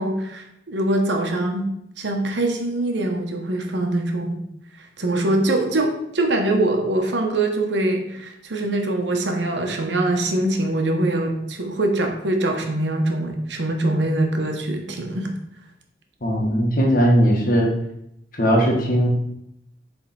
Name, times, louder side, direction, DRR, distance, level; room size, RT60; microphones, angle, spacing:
voice 1, 0.0-4.4 5.0-15.3, right 1 dB, 85° right, 3 dB, 1.0 m, -23 dB
voice 2, 16.2-17.7 18.3-19.1, equal, 50° left, -1 dB, 1.4 m, -18 dB
7.7 x 3.5 x 4.2 m, 0.77 s
head